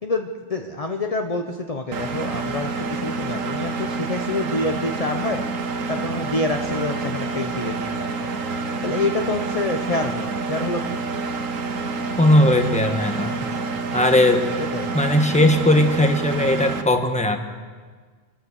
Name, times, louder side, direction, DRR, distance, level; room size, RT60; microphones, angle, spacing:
voice 1, 0.0-5.5 5.9-8.3 8.8-11.0 14.7-15.0, left 2 dB, 30° left, 4 dB, 0.9 m, -27 dB
Engine, 1.9-16.8, right 3 dB, 80° right, 1.5 m, -28 dB
voice 2, 12.2-13.4 13.9-14.5 14.9-17.4, left 1 dB, 5° left, 6 dB, 1.3 m, -18 dB
26.5 x 12.5 x 8.3 m, 1.5 s
omnidirectional pair, 1.3 m